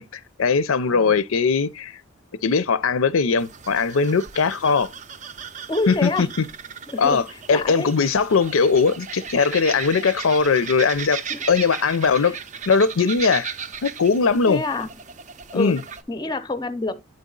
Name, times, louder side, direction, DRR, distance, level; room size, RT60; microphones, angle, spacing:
voice 1, 0.0-2.0 2.4-4.9 5.9-6.3 7.0-7.2 7.5-11.2 11.5-12.4 12.7-13.5 13.8-14.6 15.5-15.8, left 5 dB, 80° left, 0.5 m, -20 dB
voice 2, 0.9-1.2 5.7-6.3 6.9-8.0 11.3-11.4 12.2-12.4 14.5-14.9 15.5-17.0, left 2 dB, 20° left, 0.5 m, -28 dB
sound 1, 3.4-16.0, right 7 dB, 35° right, 0.5 m, -36 dB
8.9 x 4.0 x 3.8 m
head